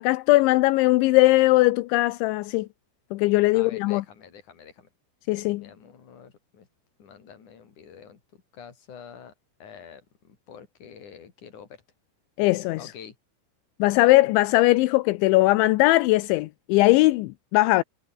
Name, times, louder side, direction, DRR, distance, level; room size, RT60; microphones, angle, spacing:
voice 1, 0.0-2.7 3.1-4.0 5.3-5.7 12.4-12.8 13.8-17.8, left 20 dB, 80° left, 2.9 m, -20 dB
voice 2, 3.5-4.9 5.6-6.7 7.0-8.2 8.5-9.3 9.6-11.8 12.8-13.2, left 7 dB, 40° left, 4.7 m, -46 dB
omnidirectional pair, 5.7 m